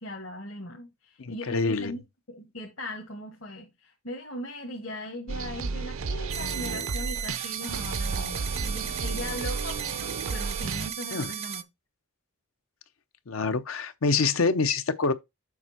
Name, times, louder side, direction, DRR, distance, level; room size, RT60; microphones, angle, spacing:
voice 1, 0.0-2.0 2.3-11.6, left 1 dB, 70° left, 1.7 m, -39 dB
voice 2, 1.2-1.9 11.1-11.3 13.3-15.1, left 4 dB, 85° left, 0.7 m, -26 dB
sound 1, 5.3-10.9, right 4 dB, 80° right, 0.6 m, -33 dB
sound 2, 6.3-11.6, right 9 dB, 30° right, 0.4 m, -36 dB
7.3 x 4.3 x 4.4 m
head